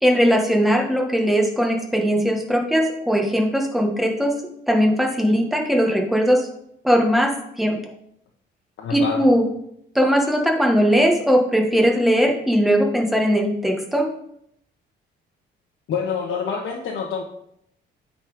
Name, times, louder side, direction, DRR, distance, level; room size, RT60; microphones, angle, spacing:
voice 1, 0.0-4.3 4.7-6.5 6.8-7.3 7.6-7.8 8.9-9.4 9.9-14.1, equal, ahead, 1 dB, 1.7 m, -19 dB
voice 2, 8.8-9.2 15.9-17.2, left 6 dB, 70° left, -1 dB, 1.2 m, -26 dB
8.8 x 4.3 x 5.1 m, 0.73 s
cardioid pair, 90°, 20 cm